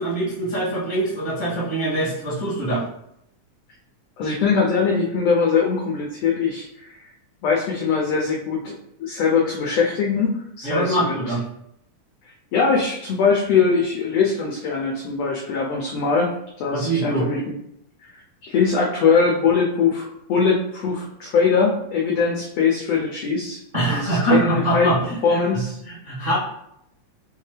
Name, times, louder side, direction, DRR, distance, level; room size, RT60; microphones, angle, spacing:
voice 1, 0.0-2.8 10.6-11.4 16.7-17.2 23.7-25.4 25.8-26.4, right 2 dB, 35° right, -9 dB, 0.7 m, -23 dB
voice 2, 4.2-7.0 7.4-8.7 9.0-11.0 12.5-17.5 18.4-23.6 23.9-24.9 25.2-25.8, left 5 dB, 85° left, -2 dB, 1.4 m, -21 dB
5.5 x 2.9 x 3.2 m, 0.78 s
omnidirectional pair, 3.6 m